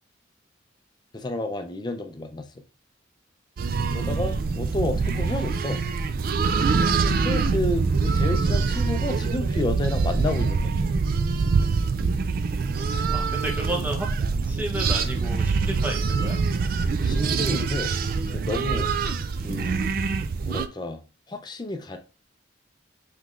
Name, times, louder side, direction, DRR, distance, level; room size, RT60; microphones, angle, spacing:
voice 1, 1.1-2.6 3.9-5.8 7.0-10.9 17.0-17.9 18.3-18.9 19.4-19.9 20.4-21.0 21.3-22.0, left 2 dB, 20° left, 6 dB, 0.5 m, -30 dB
sound 1, 3.6-20.7, right 4 dB, 50° right, 0.3 m, -24 dB
voice 2, 13.1-14.1 14.4-16.4, right 1 dB, 10° right, 1 dB, 0.8 m, -32 dB
5.5 x 3.2 x 2.4 m, 0.34 s
head